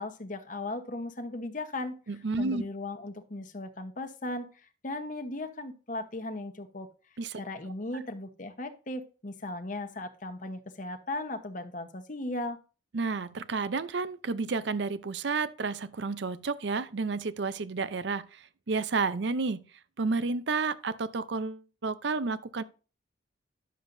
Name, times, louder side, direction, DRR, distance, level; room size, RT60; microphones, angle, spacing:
voice 1, 0.0-2.0 2.4-4.5 4.8-6.9 7.4-12.6, left 2 dB, 40° left, 1.0 m, -37 dB
voice 2, 2.1-2.6 7.2-7.4 12.9-19.6 20.0-22.6, right 4 dB, 65° right, 0.6 m, -31 dB
10.5 x 7.2 x 2.6 m
head